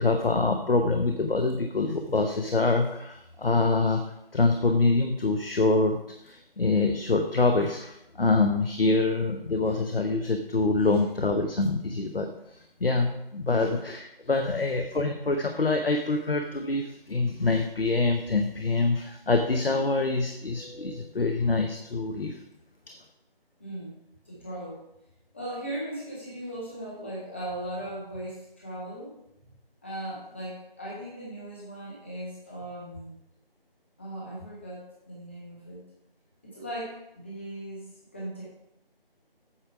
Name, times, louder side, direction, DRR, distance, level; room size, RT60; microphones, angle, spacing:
voice 1, 0.0-22.4 22.9-23.0, left 3 dB, 75° left, 4 dB, 0.8 m, -25 dB
voice 2, 23.6-23.9 24.2-24.8 25.3-29.1 29.8-33.1 34.0-35.8 36.4-38.4, right 1 dB, 10° left, -6 dB, 1.2 m, -38 dB
8.6 x 5.0 x 4.7 m, 0.81 s
figure-of-eight pair, 165°, 29 cm